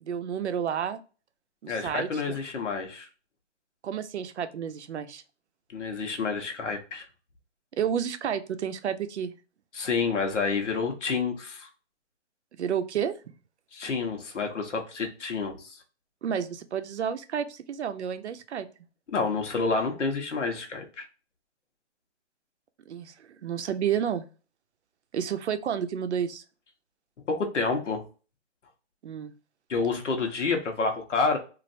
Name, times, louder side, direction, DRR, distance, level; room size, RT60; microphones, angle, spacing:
voice 1, 0.0-1.0 1.6-2.4 3.8-5.2 7.8-9.3 12.6-13.1 16.2-18.7 22.9-24.2 25.1-26.4 29.0-29.3, right 8 dB, 70° right, 10 dB, 0.6 m, -30 dB
voice 2, 1.7-3.1 5.7-7.1 9.7-11.7 13.7-15.8 19.1-21.1 27.3-28.0 29.7-31.4, left 4 dB, 90° left, 4 dB, 0.9 m, -29 dB
3.1 x 2.5 x 2.6 m, 0.35 s
hypercardioid pair, 165°, 35 cm